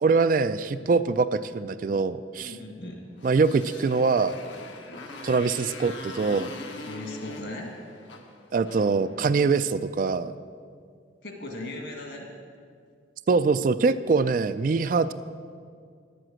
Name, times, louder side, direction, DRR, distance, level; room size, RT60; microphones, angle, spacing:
voice 1, 0.0-2.6 3.2-4.4 5.2-6.5 8.5-10.3 13.3-15.1, right 4 dB, 45° right, 13 dB, 0.3 m, -23 dB
voice 2, 2.4-3.0 6.9-7.8 11.2-12.3, left 2 dB, 65° left, 2 dB, 2.0 m, -38 dB
Motorcycle, 3.1-9.7, left 3 dB, 85° left, 1.3 m, -43 dB
10.5 x 7.8 x 7.6 m, 2.2 s
head